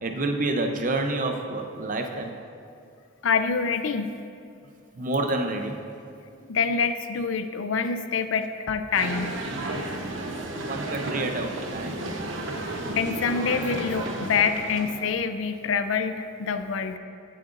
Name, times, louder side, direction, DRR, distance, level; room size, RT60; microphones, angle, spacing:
voice 1, 0.0-2.3 5.0-5.8 9.9-10.1 10.6-12.0, right 2 dB, 40° right, 4 dB, 0.7 m, -28 dB
voice 2, 3.2-4.1 6.5-9.4 9.7-9.8 12.5-12.6 12.9-17.0, left 5 dB, 75° left, 9 dB, 0.5 m, -26 dB
sound 1, 8.9-15.1, right 2 dB, 70° right, 0.9 m, -33 dB
15.5 x 7.7 x 2.5 m, 2.5 s
head